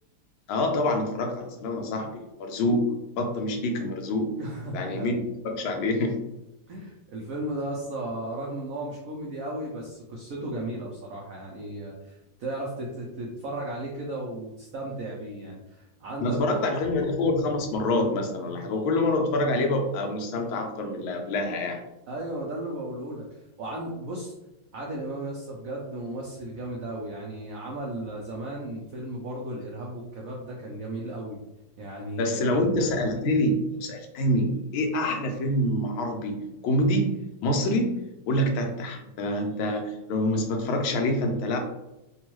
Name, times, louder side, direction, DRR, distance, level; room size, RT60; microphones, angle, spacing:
voice 1, 0.5-4.3 4.7-5.1 5.4-6.2 16.2-21.8 32.2-33.5 33.8-37.1 37.4-38.0 38.3-41.6, left 1 dB, 90° left, 3 dB, 1.5 m, -26 dB
voice 2, 4.4-5.1 6.7-16.6 22.1-23.2 23.6-24.3 24.7-31.4 31.8-32.6, right 1 dB, 85° right, -2 dB, 0.7 m, -35 dB
3.5 x 2.3 x 3.0 m, 0.95 s
omnidirectional pair, 2.1 m